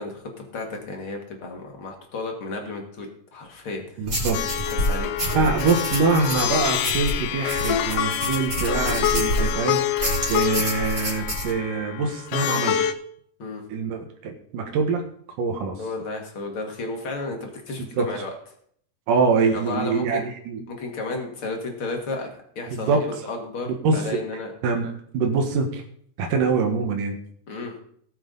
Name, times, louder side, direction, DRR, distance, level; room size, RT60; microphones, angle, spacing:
voice 1, 0.0-4.1 4.8-5.1 5.4-5.5 13.4-13.6 15.8-18.3 19.5-20.2 20.7-22.3 22.6-24.5 27.5-27.7, left 3 dB, 45° left, 2 dB, 2.6 m, -32 dB
voice 2, 4.0-4.7 5.3-12.8 13.7-15.0 15.4-15.8 17.8-18.1 19.1-20.6 22.7-23.1 23.7-24.1 24.6-25.8 26.2-27.2, right 4 dB, 80° right, 3 dB, 3.0 m, -24 dB
sound 1, 4.1-9.6 10.0-11.5, right 1 dB, 30° right, 4.5 m, -28 dB
Plucked string instrument, 4.3-12.9, left 11 dB, 85° left, 1.3 m, -26 dB
18.5 x 7.4 x 4.0 m, 0.63 s
omnidirectional pair, 3.7 m